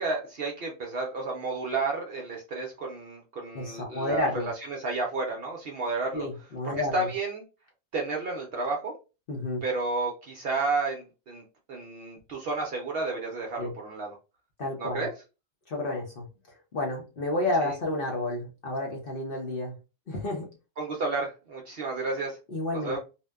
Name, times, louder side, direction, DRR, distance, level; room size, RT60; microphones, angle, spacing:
voice 1, 0.0-6.3 6.6-7.4 7.9-8.9 9.6-11.4 11.7-14.1 14.8-15.1 17.6-17.7 20.8-22.4 22.7-23.0, right 3 dB, 60° right, 0 dB, 0.6 m, -31 dB
voice 2, 3.5-4.5 6.1-7.1 9.3-9.6 13.6-13.7 14.6-15.1 15.7-16.2 16.7-19.7 20.1-20.5 22.5-23.0, left 2 dB, 55° left, -1 dB, 0.7 m, -30 dB
2.6 x 2.1 x 2.2 m, 0.30 s
omnidirectional pair, 1.4 m